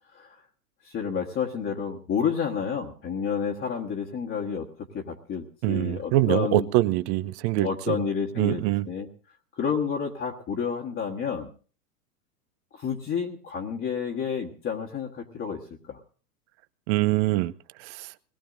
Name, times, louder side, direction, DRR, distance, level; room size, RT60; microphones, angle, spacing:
voice 1, 0.8-6.7 7.6-9.1 9.5-11.5 12.7-15.6 15.9-16.0, left 7 dB, 25° left, -1 dB, 1.5 m, -30 dB
voice 2, 5.6-8.0 8.4-8.8 16.9-17.5 17.8-18.1, right 15 dB, 45° right, 16 dB, 0.7 m, -24 dB
21.5 x 18.0 x 2.6 m, 0.41 s
hypercardioid pair, 100°, 47 cm